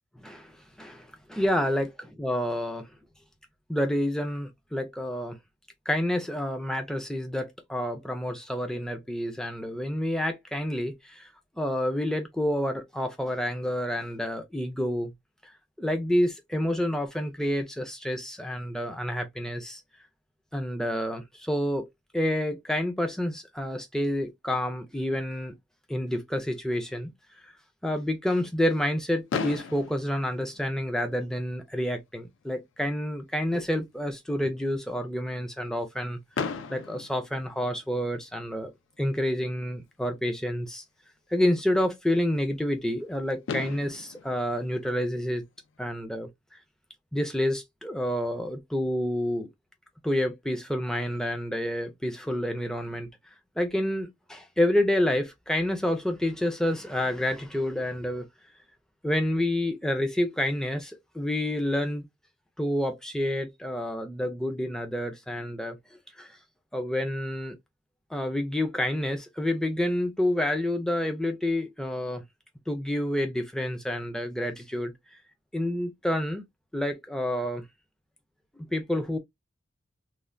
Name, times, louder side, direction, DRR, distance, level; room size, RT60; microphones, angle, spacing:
voice 1, 0.2-1.9 2.2-2.9 3.7-5.4 5.9-11.3 11.6-15.1 15.4-15.5 15.8-19.8 20.5-21.9 22.1-25.5 25.9-27.1 27.4-27.5 27.8-38.7 39.0-40.8 41.3-45.4 45.8-46.6 47.1-49.5 50.0-53.1 53.6-58.3 59.0-62.0 62.6-65.8 66.2-66.4 66.7-67.6 68.1-72.2 72.7-74.9 75.5-76.4 76.7-77.6 78.6-79.2, left 1 dB, 5° left, 0.4 m, -29 dB
Fireworks, 29.3-31.3 32.1-32.2 32.4-32.6 32.9-33.0 36.3-38.2 39.9-40.0 43.0-43.1 43.5-45.8, left 5 dB, 75° left, 0.4 m, -37 dB
3.2 x 2.2 x 2.4 m
head